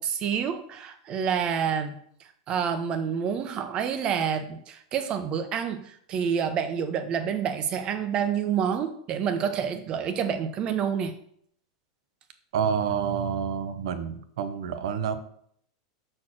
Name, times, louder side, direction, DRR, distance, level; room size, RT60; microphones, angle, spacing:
voice 1, 0.0-2.0 2.5-11.1, right 7 dB, 30° right, 8 dB, 0.9 m, -28 dB
voice 2, 12.5-15.2, right 7 dB, 75° right, 10 dB, 0.9 m, -28 dB
6.2 x 4.4 x 6.0 m, 0.66 s
supercardioid pair, 140°, 3 cm